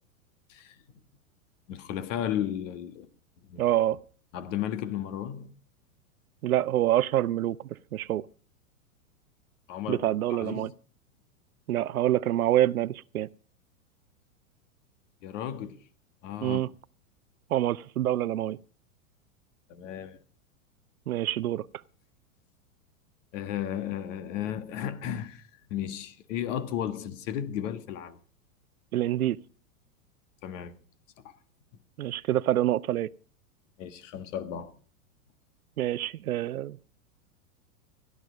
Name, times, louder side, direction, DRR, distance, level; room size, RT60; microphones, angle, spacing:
voice 1, 1.7-3.1 3.5-3.6 4.3-5.5 9.7-10.0 10.4-10.7 15.2-15.8 16.2-16.6 19.7-20.2 23.3-25.4 25.7-28.2 30.4-30.7 31.2-31.3 31.7-31.8 33.8-34.7, left 10 dB, 60° left, 1.7 m, -34 dB
voice 2, 3.6-4.0 6.4-7.6 7.9-8.2 9.9-10.7 11.7-13.3 16.4-16.7 17.5-18.6 21.1-21.6 28.9-29.4 32.0-33.1 35.8-36.8, right 13 dB, 90° right, 0.5 m, -26 dB
15.5 x 11.0 x 5.1 m
hypercardioid pair, 110°, 42 cm